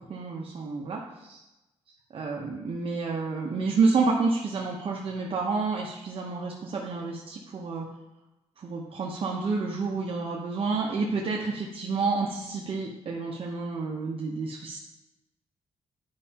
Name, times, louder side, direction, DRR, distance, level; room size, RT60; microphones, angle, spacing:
voice 1, 0.0-1.4 2.1-7.9 8.6-14.8, right 4 dB, 50° right, -2 dB, 0.8 m, -29 dB
10.5 x 5.5 x 2.9 m, 0.98 s
cardioid pair, 135°, 12 cm